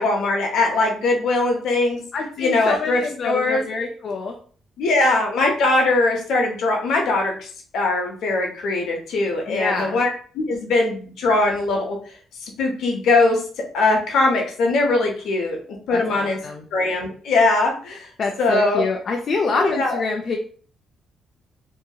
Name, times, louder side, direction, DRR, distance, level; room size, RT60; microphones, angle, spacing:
voice 1, 0.0-2.0 2.4-3.6 4.8-7.5 7.7-10.1 10.3-12.0 12.4-13.4 13.7-15.6 15.9-16.4 16.7-18.1 18.4-18.9 19.5-20.0, left 2 dB, 75° left, 1 dB, 0.8 m, -21 dB
voice 2, 2.1-4.4 9.5-10.0 15.9-16.7 18.2-20.4, left 4 dB, 55° left, 1 dB, 0.4 m, -26 dB
2.8 x 2.6 x 2.3 m, 0.44 s
cardioid pair, 90°, 0 cm